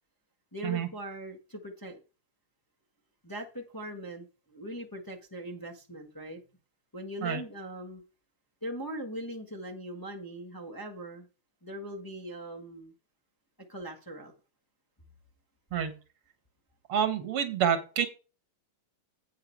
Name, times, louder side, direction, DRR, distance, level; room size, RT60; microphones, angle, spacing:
voice 1, 0.5-2.0 3.2-6.4 6.9-8.0 8.6-11.3 11.6-12.9 13.7-14.3, right 1 dB, 10° left, 0 dB, 1.2 m, -40 dB
voice 2, 16.9-18.1, right 8 dB, 80° right, 10 dB, 2.3 m, -28 dB
8.6 x 6.7 x 4.6 m, 0.33 s
omnidirectional pair, 2.4 m